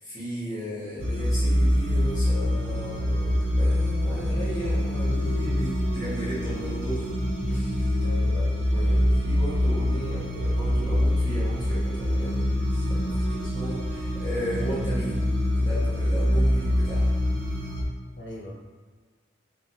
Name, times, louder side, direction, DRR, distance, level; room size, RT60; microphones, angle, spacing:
voice 1, 0.0-7.0 7.5-7.9 8.6-15.3 15.5-17.1, equal, 20° left, -9 dB, 1.1 m, -35 dB
sound 1, 1.0-17.8, left 1 dB, 60° right, 0.6 m, -25 dB
voice 2, 8.0-8.9 18.2-18.5, left 1 dB, 60° left, -3 dB, 0.7 m, -40 dB
3.5 x 2.2 x 2.7 m, 1.5 s
head